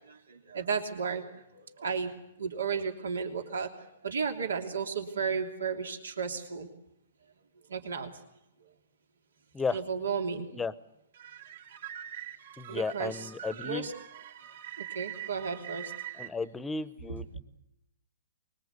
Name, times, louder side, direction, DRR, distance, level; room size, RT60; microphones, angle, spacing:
voice 1, 0.5-1.3 1.8-2.1 2.4-3.7 4.0-6.7 7.7-8.1 9.7-10.5 12.7-13.3 13.6-13.9 14.8-15.9, right 6 dB, 90° right, 4 dB, 3.0 m, -33 dB
sound 1, 11.1-16.3, right 11 dB, 70° right, 4.2 m, -43 dB
voice 2, 12.6-13.9 16.1-17.4, left 4 dB, 10° left, 16 dB, 0.9 m, -34 dB
24.5 x 21.5 x 8.2 m, 0.84 s
hypercardioid pair, 140°, 0 cm